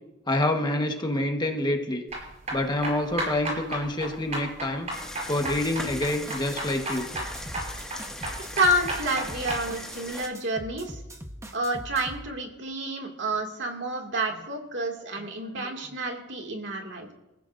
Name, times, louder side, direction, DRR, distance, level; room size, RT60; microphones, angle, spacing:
voice 1, 0.3-2.0 2.5-4.9 5.3-7.1 15.5-15.7, left 1 dB, 25° left, 3 dB, 1.3 m, -27 dB
sound 1, 2.1-9.6, right 1 dB, 40° right, 6.9 m, -34 dB
sound 2, 4.9-10.3, left 1 dB, 5° left, 1.8 m, -39 dB
sound 3, 5.4-6.6 6.9-10.0 10.3-12.3, equal, 15° right, 1.0 m, -41 dB
voice 2, 8.5-11.0 11.5-17.1, right 1 dB, 65° right, 2 dB, 2.3 m, -29 dB
29.0 x 15.5 x 2.6 m, 0.96 s
head